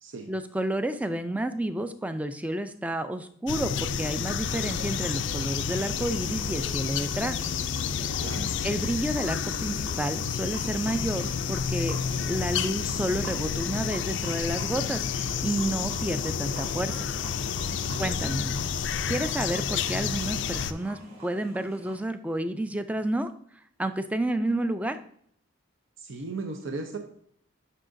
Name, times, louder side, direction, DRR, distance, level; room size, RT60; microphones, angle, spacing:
voice 1, 0.3-7.4 8.6-17.1 18.0-18.5 19.1-23.3 23.8-25.0, right 1 dB, 5° right, 10 dB, 0.3 m, -30 dB
sound 1, 3.5-20.7, left 7 dB, 60° left, 0.4 m, -30 dB
sound 2, 4.4-22.0, right 1 dB, 30° right, 3.0 m, -46 dB
voice 2, 8.2-8.5 17.7-18.4 26.0-27.0, right 3 dB, 70° right, 4 dB, 0.7 m, -37 dB
10.0 x 5.7 x 2.6 m, 0.65 s
head